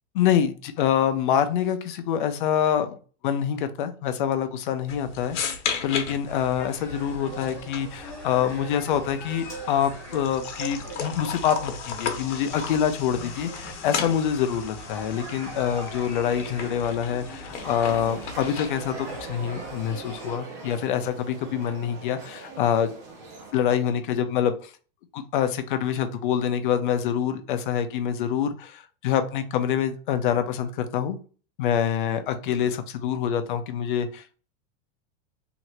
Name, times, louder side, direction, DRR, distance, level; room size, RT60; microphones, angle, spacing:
voice 1, 0.1-3.0 3.2-5.4 5.8-22.9 23.5-24.7 25.1-31.2 31.6-34.4, left 9 dB, 45° left, 9 dB, 0.4 m, -26 dB
sound 1, 4.9-18.9, left 6 dB, 90° left, 0.9 m, -36 dB
sound 2, 6.2-20.4, equal, 10° left, 0.7 m, -41 dB
sound 3, 17.6-23.5, right 3 dB, 25° right, 0.6 m, -41 dB
2.8 x 2.5 x 3.0 m, 0.39 s
supercardioid pair, 175°, 35 cm